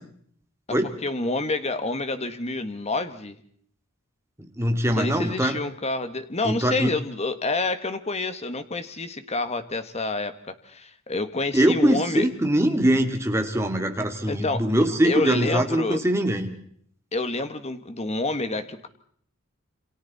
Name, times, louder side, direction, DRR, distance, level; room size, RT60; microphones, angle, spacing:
voice 1, 0.7-3.4 4.9-12.3 14.3-14.7 15.0-16.0 17.1-18.9, left 2 dB, 30° left, 10 dB, 1.6 m, -28 dB
voice 2, 4.6-5.6 6.4-6.9 11.5-16.5, right 1 dB, 10° right, 4 dB, 2.3 m, -22 dB
28.5 x 26.5 x 4.2 m, 0.62 s
head